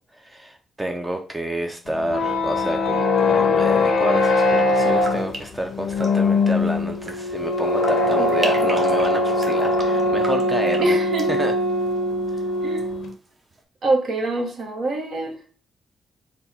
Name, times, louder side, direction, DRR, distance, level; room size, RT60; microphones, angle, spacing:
voice 1, 0.2-11.0 11.3-11.5, right 1 dB, 15° right, 5 dB, 0.4 m, -29 dB
sound 1, 1.9-13.1, left 2 dB, 80° left, 0.5 m, -21 dB
sound 2, 4.9-12.8 13.1-13.6, right 2 dB, 40° right, 0.8 m, -39 dB
voice 2, 8.2-8.7 10.8-11.4 12.6-12.9 13.8-15.3, right 2 dB, 70° right, 2 dB, 0.8 m, -25 dB
3.5 x 2.0 x 4.1 m, 0.42 s
cardioid pair, 80°, 0 cm